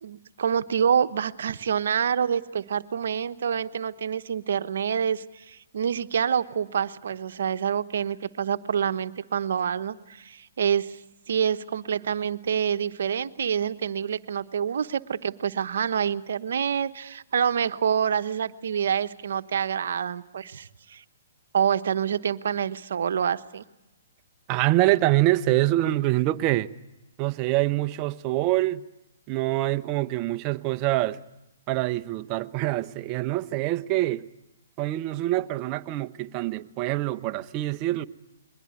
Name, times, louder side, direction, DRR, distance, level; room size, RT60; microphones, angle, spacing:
voice 1, 0.0-11.0 11.3-21.0 21.5-23.6, right 8 dB, 65° right, 1.0 m, -27 dB
voice 2, 24.5-26.7 27.2-28.8 29.3-31.2 31.7-34.3 34.8-38.0, right 17 dB, 30° right, 0.8 m, -25 dB
22.5 x 20.0 x 9.4 m
hypercardioid pair, 140°, 0 cm